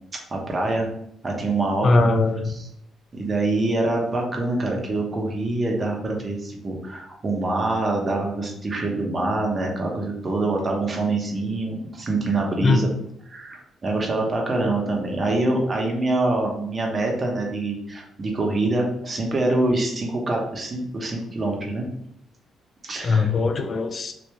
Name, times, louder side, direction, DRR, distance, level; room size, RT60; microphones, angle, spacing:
voice 1, 0.3-0.9 1.2-2.1 2.4-2.7 3.1-12.9 13.3-21.8 22.8-23.3, right 2 dB, 30° right, 0 dB, 0.9 m, -25 dB
voice 2, 1.8-2.5 12.6-12.8 23.0-24.1, left 3 dB, 45° left, 6 dB, 0.3 m, -20 dB
3.0 x 2.6 x 3.4 m, 0.73 s
cardioid pair, 90°, 0 cm